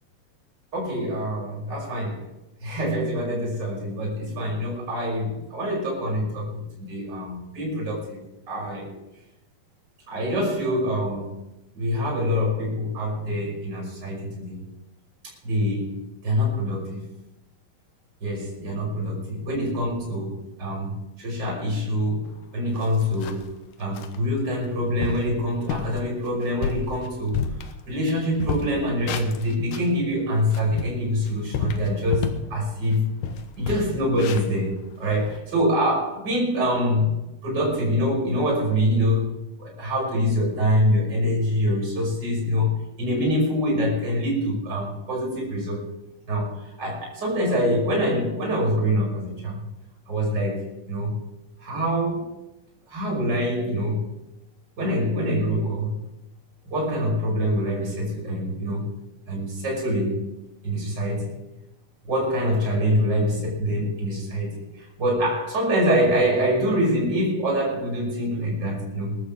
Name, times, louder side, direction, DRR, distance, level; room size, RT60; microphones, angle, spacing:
voice 1, 0.7-2.2 2.6-8.2 8.5-8.9 10.1-11.3 11.7-14.6 15.4-17.1 18.2-22.3 22.5-27.4 27.9-33.1 33.6-37.1 37.4-45.8 46.3-49.6 50.1-51.1 51.6-52.3 52.9-54.1 54.8-56.0 56.6-58.9 59.3-60.2 60.6-61.4 62.0-69.2, equal, 30° right, -2 dB, 6.4 m, -25 dB
sound 1, 22.3-22.4 22.7-23.5 23.9-24.2 24.6-24.7 25.0-25.3 25.7-26.0 26.4-28.1 28.4-29.9 30.4-32.5 32.9-33.0 33.2-35.4, left 6 dB, 75° left, 2.5 m, -30 dB
22.5 x 12.5 x 3.7 m, 0.95 s
omnidirectional pair, 3.9 m